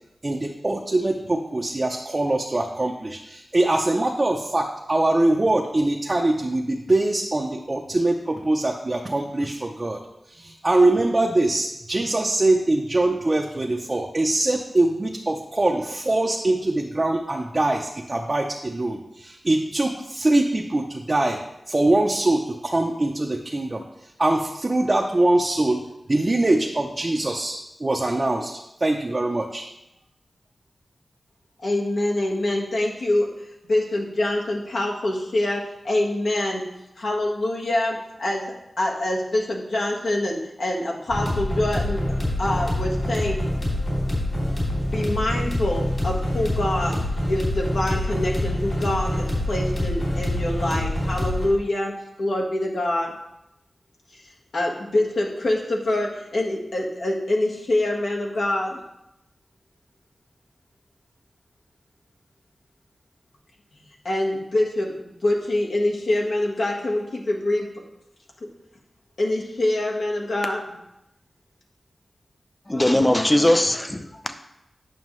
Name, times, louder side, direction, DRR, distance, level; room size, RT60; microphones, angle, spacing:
voice 1, 0.2-10.0 10.3-21.4 21.7-23.8 24.2-25.8 26.1-29.7, right 2 dB, 30° right, 0 dB, 0.6 m, -23 dB
voice 2, 31.6-36.6 37.0-38.5 38.8-43.5 44.9-53.1 54.1-54.2 54.5-58.8 63.7-67.7 69.2-70.8, left 1 dB, 80° left, -2 dB, 1.4 m, -25 dB
sound 1, 41.1-51.5, left 1 dB, 60° left, 3.3 m, -25 dB
voice 3, 72.7-74.3, left 1 dB, 20° left, 8 dB, 0.6 m, -20 dB
9.1 x 6.4 x 3.1 m, 0.87 s
wide cardioid pair, 115°, 0 cm